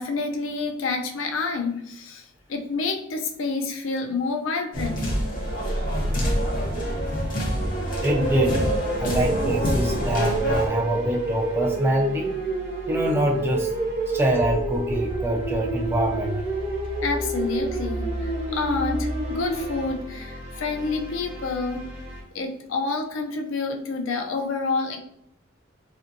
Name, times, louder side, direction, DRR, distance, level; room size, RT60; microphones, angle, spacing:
voice 1, 0.0-5.1 17.0-21.9 22.3-25.0, left 4 dB, 75° left, 3 dB, 0.4 m, -28 dB
sound 1, 4.7-10.7, equal, 40° left, 0.7 m, -26 dB
sound 2, 4.7-22.2, right 1 dB, 30° right, 0.7 m, -37 dB
voice 2, 8.0-8.6 9.0-12.4 12.9-13.7 14.1-16.4, right 1 dB, 10° right, 0 dB, 0.3 m, -25 dB
sound 3, 8.0-19.8, right 2 dB, 55° right, 0.9 m, -29 dB
2.5 x 2.5 x 2.6 m, 0.74 s
head